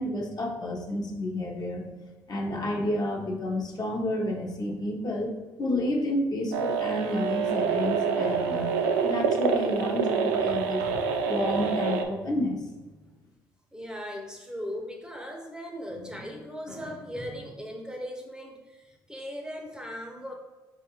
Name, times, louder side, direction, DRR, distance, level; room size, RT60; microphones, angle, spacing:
voice 1, 0.0-1.8 2.3-5.3 5.6-8.7 9.0-12.6, left 1 dB, 40° left, 0 dB, 0.8 m, -30 dB
sound 1, 6.5-12.0, right 6 dB, 80° right, 0.4 m, -26 dB
voice 2, 13.7-20.3, equal, 5° right, 1 dB, 0.7 m, -38 dB
4.4 x 2.4 x 3.0 m, 1.2 s
hypercardioid pair, 60°, 10 cm